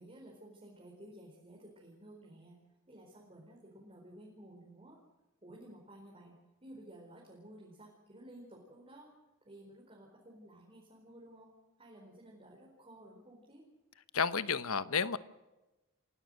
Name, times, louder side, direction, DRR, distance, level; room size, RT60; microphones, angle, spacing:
voice 1, 0.0-2.6 2.9-5.0 5.4-6.3 6.6-9.1 9.4-11.5 11.8-13.6, right 1 dB, 25° right, -2 dB, 4.6 m, -54 dB
voice 2, 14.1-15.2, left 6 dB, 85° left, 14 dB, 1.1 m, -31 dB
29.0 x 16.5 x 6.5 m, 1.0 s
head